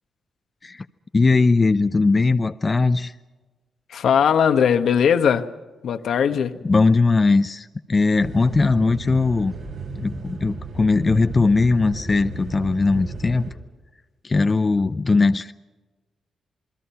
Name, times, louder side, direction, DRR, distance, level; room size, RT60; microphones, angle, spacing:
voice 1, 1.1-3.1 6.6-9.5 10.0-13.4 14.2-15.5, left 3 dB, 30° left, 0.6 m, -19 dB
voice 2, 3.9-5.5 5.8-6.6, left 7 dB, 75° left, 1.2 m, -19 dB
sound 1, 8.1-13.5, right 3 dB, 80° right, 7.1 m, -34 dB
28.0 x 21.0 x 5.8 m
cardioid pair, 90°, 0 cm